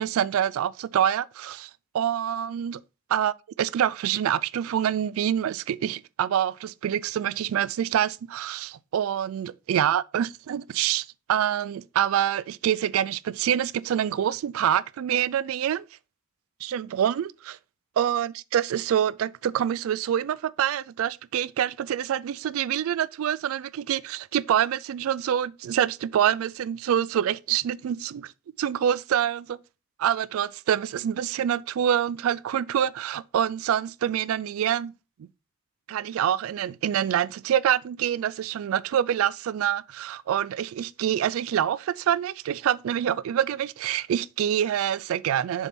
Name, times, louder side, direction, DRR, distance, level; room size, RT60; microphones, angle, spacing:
voice 1, 0.0-1.7 1.9-2.8 3.1-3.3 3.6-15.9 16.6-17.6 18.0-28.3 28.6-29.6 30.0-34.9 35.2-35.3 35.9-45.7, right 10 dB, 80° right, 0.3 m, -26 dB
6.9 x 3.6 x 4.2 m
head